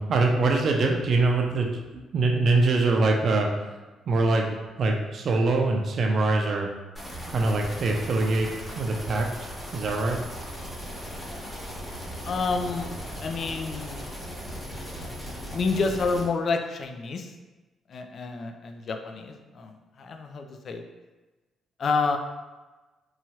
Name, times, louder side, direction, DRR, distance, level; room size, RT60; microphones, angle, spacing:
voice 1, 0.0-1.7 2.1-3.5 4.1-4.5 4.8-6.7 7.3-8.5 8.7-10.2, right 3 dB, 55° right, 1 dB, 0.4 m, -23 dB
sound 1, 7.0-16.2, equal, 10° left, 1.1 m, -38 dB
voice 2, 12.2-14.1 15.5-17.3 17.9-20.8 21.8-22.2, left 4 dB, 55° left, 5 dB, 0.3 m, -29 dB
2.8 x 2.3 x 3.0 m, 1.2 s
cardioid pair, 90°, 0 cm